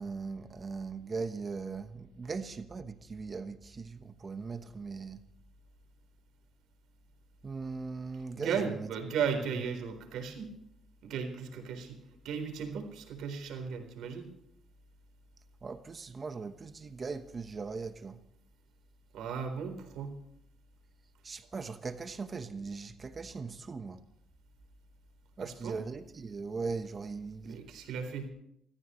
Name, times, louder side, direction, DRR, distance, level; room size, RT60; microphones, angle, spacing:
voice 1, 0.0-5.2 7.4-8.9 15.6-18.2 21.2-24.0 25.4-27.6, right 4 dB, 35° right, 1.1 m, -39 dB
voice 2, 8.3-10.5 11.0-12.0 12.2-14.3 19.1-20.1 25.4-25.8 27.4-28.3, right 6 dB, 85° right, 3.9 m, -36 dB
29.5 x 14.5 x 3.2 m
cardioid pair, 90°, 0 cm